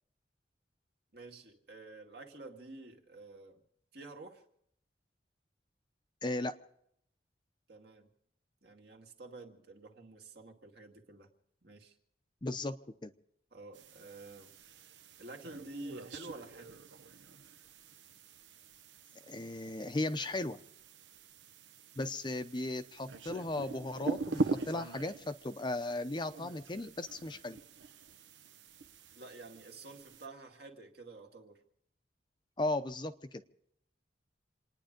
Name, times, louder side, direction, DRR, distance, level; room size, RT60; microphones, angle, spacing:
voice 1, 1.1-3.6 3.9-4.4 7.7-8.1 8.6-11.3 11.6-12.0 13.5-14.5 15.2-16.8 29.2-31.6, right 2 dB, 60° right, 2 dB, 2.1 m, -50 dB
voice 2, 6.2-6.5 12.4-13.1 19.3-20.6 22.0-27.6 32.6-33.4, left 2 dB, 25° left, 9 dB, 0.6 m, -36 dB
sound 1, 13.7-30.3, right 3 dB, 90° right, 0.8 m, -43 dB
28.0 x 9.9 x 5.2 m, 0.72 s
head